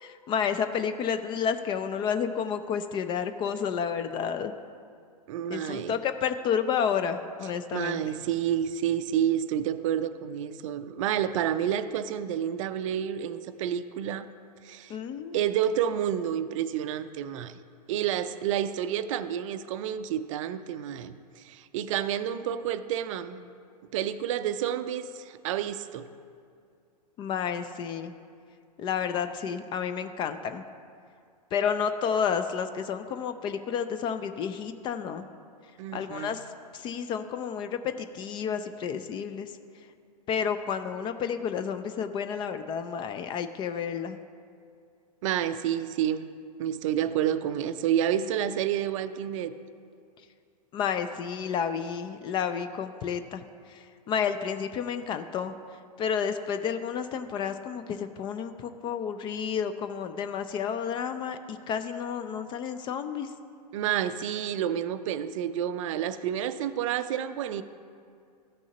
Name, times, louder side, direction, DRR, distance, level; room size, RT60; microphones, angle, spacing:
voice 1, 0.0-4.5 5.5-8.0 14.9-15.4 27.2-28.1 28.8-30.6 31.5-35.3 35.9-36.5 36.7-39.5 40.3-44.2 50.7-55.5 56.0-63.3, left 7 dB, 25° left, 10 dB, 0.3 m, -31 dB
voice 2, 5.3-6.0 7.7-14.3 14.6-14.9 15.3-17.6 17.9-23.5 23.9-26.1 35.8-36.3 45.2-46.3 46.6-49.5 63.7-67.6, right 10 dB, 50° right, 12 dB, 0.4 m, -29 dB
14.5 x 6.2 x 2.8 m, 2.3 s
figure-of-eight pair, 105°, 21 cm